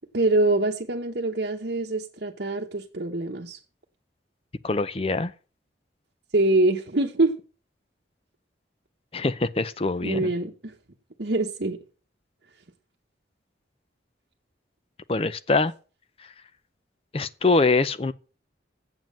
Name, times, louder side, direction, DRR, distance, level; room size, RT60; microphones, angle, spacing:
voice 1, 0.1-3.6 6.3-7.3 10.0-10.7 11.2-11.8, right 2 dB, 60° right, 0.9 m, -24 dB
voice 2, 4.6-5.3 9.1-10.3 15.1-15.7 17.1-18.1, left 3 dB, 30° left, 0.5 m, -23 dB
7.6 x 7.4 x 7.2 m
head